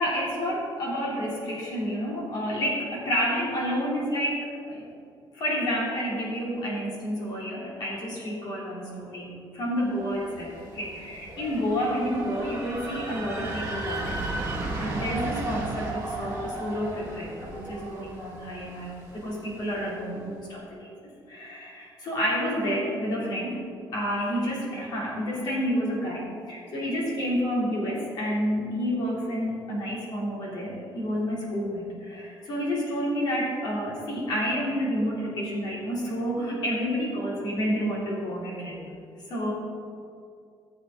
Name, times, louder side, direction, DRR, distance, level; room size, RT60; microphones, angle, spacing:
voice 1, 0.0-4.8 5.3-14.5 14.8-20.9 21.3-23.6 23.9-38.8 39.3-39.5, equal, 55° left, -5 dB, 3.2 m, -29 dB
sound 1, 10.1-19.9, right 2 dB, 35° right, 2.1 m, -35 dB
15.5 x 7.6 x 3.9 m, 2.4 s
cardioid pair, 180°, 8 cm